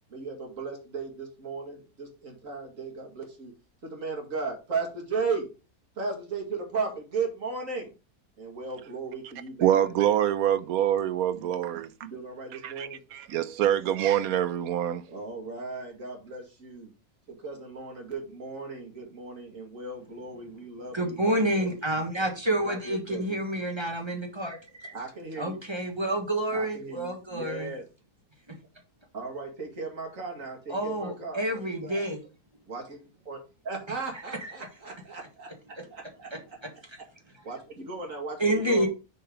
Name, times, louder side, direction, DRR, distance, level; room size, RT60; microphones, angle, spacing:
voice 1, 0.1-3.5 3.8-5.5 6.0-7.9 8.4-9.8 11.3-11.4 12.0-13.0 15.1-16.9 17.3-22.0 22.6-23.4 24.9-25.6 26.5-27.8 29.1-32.1 32.7-33.0 33.3-33.4 33.6-35.5 35.9-36.6 37.4-38.9, right 4 dB, 55° right, 2.5 m, -36 dB
voice 2, 9.6-11.9 12.6-15.0, right 11 dB, 70° right, 1.1 m, -25 dB
voice 3, 20.9-24.9 25.4-27.7 30.7-32.2 34.4-34.5 38.4-38.9, right 1 dB, 20° right, 1.4 m, -28 dB
6.5 x 4.3 x 5.1 m
omnidirectional pair, 1.7 m